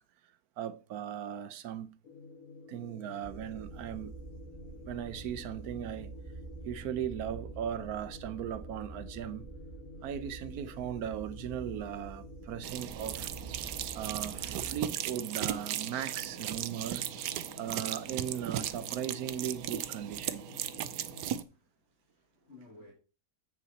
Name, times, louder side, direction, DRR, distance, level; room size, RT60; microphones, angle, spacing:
voice 1, 0.6-2.0 2.7-4.1 4.9-6.1 6.6-9.5 10.0-13.3 13.9-17.1 17.6-20.5, right 10 dB, 70° right, 1.1 m, -38 dB
sound 1, 2.0-21.4, left 4 dB, 60° left, 1.2 m, -51 dB
sound 2, 3.2-14.9, right 4 dB, 30° right, 1.3 m, -47 dB
sound 3, 12.6-21.4, right 11 dB, 90° right, 1.2 m, -37 dB
voice 2, 21.5-22.9, left 2 dB, 40° left, 2.3 m, -56 dB
7.6 x 6.9 x 4.1 m
omnidirectional pair, 1.7 m